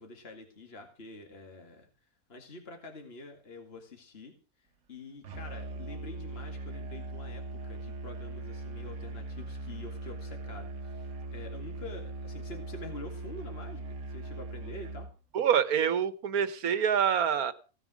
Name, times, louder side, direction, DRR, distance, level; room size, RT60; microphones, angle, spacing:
voice 1, 0.0-1.9 2.3-4.3 4.9-15.1, left 2 dB, 45° left, 4 dB, 2.4 m, -47 dB
Musical instrument, 5.2-15.2, right 2 dB, 60° right, 1.4 m, -40 dB
voice 2, 15.3-17.5, right 8 dB, 80° right, 14 dB, 1.6 m, -26 dB
17.0 x 9.1 x 6.2 m, 0.36 s
omnidirectional pair, 1.5 m